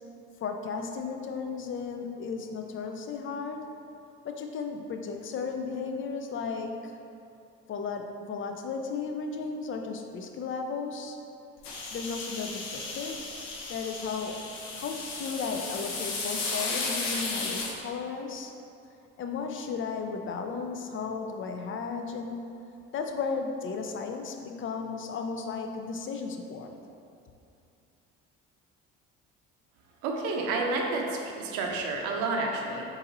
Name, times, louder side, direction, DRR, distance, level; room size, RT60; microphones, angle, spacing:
voice 1, 0.4-3.7 4.2-7.0 7.7-11.2 11.9-13.3 13.7-18.5 19.2-22.5 22.9-26.8, left 5 dB, 40° left, 4 dB, 0.5 m, -35 dB
sound 1, 11.6-17.7, left 3 dB, 80° left, 0.7 m, -34 dB
voice 2, 30.0-32.8, right 3 dB, 75° right, 0 dB, 0.7 m, -30 dB
3.9 x 2.7 x 4.0 m, 2.6 s
hypercardioid pair, 65°, 32 cm